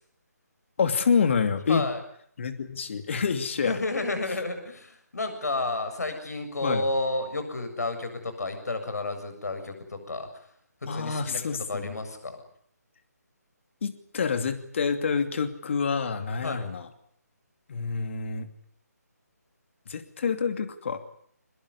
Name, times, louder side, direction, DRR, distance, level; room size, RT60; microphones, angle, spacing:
voice 1, 0.8-1.8 2.4-3.8 6.6-6.8 10.9-11.9 13.8-16.9 17.7-18.5 19.9-21.0, left 5 dB, 45° left, 9 dB, 2.7 m, -27 dB
voice 2, 1.7-2.0 3.6-10.5 10.9-11.4 11.7-12.4 16.4-16.6, left 2 dB, 70° left, 8 dB, 7.4 m, -31 dB
22.5 x 21.0 x 9.6 m, 0.65 s
figure-of-eight pair, 150°, 9 cm